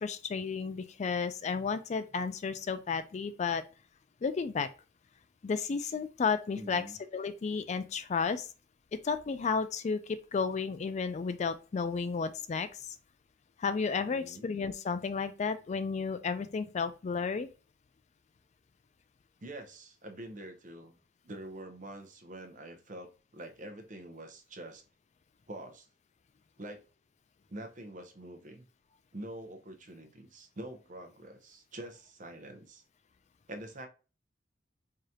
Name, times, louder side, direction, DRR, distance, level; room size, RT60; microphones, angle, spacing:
voice 1, 0.0-3.6 4.2-4.7 5.4-6.8 7.1-8.5 9.0-13.0 13.6-17.5, left 5 dB, 40° left, 0.3 m, -32 dB
voice 2, 6.6-7.0 14.1-14.5 19.4-21.0 21.2-24.8 25.5-25.9 26.6-26.8 27.5-28.6 29.1-32.8 33.5-33.9, right 1 dB, 45° right, 0.8 m, -45 dB
4.8 x 2.8 x 2.3 m
head